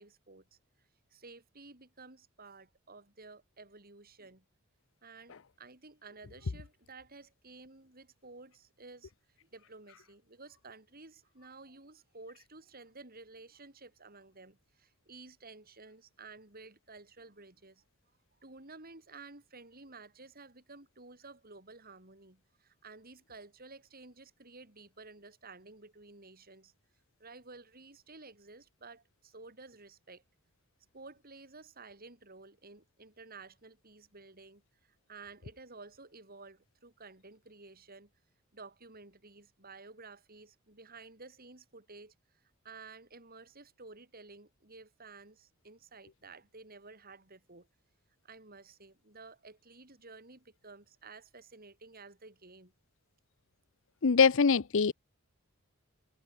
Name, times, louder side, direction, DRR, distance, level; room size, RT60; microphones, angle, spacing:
voice 1, 0.0-4.4 5.0-17.8 18.4-26.7 27.2-30.2 30.9-38.1 38.5-47.7 48.2-52.7, right 3 dB, 45° right, 5.0 m, -53 dB
voice 2, 54.0-54.9, left 5 dB, 65° left, 0.6 m, -23 dB
head